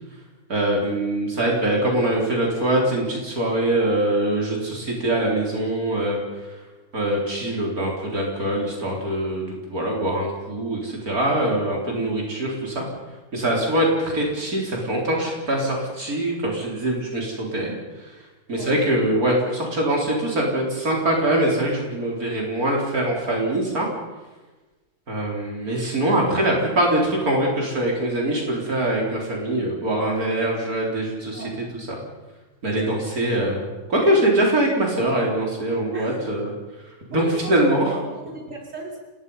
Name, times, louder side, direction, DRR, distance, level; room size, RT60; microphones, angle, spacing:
voice 1, 0.5-6.5 6.9-12.8 13.3-17.7 18.0-18.1 18.5-23.9 25.1-32.0 32.6-36.5 37.1-38.0, right 1 dB, 70° right, -1 dB, 4.4 m, -23 dB
voice 2, 31.3-31.7 35.9-36.4 37.1-37.6 37.9-39.0, right 2 dB, 55° right, -1 dB, 4.7 m, -36 dB
28.0 x 20.5 x 5.6 m, 1.2 s
omnidirectional pair, 1.6 m